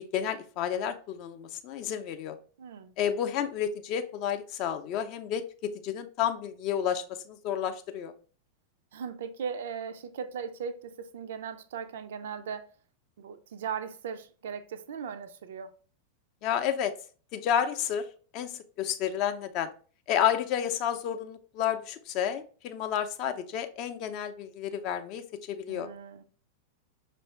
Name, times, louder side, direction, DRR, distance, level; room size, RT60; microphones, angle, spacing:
voice 1, 0.1-2.4 3.0-8.1 16.4-16.9 17.3-18.1 18.3-19.7 20.1-25.9, left 9 dB, 40° left, 0.5 m, -31 dB
voice 2, 2.6-2.9 8.9-12.7 13.2-15.7 25.7-26.2, right 7 dB, 60° right, 0.4 m, -38 dB
5.4 x 2.5 x 3.2 m
figure-of-eight pair, 90°, 0 cm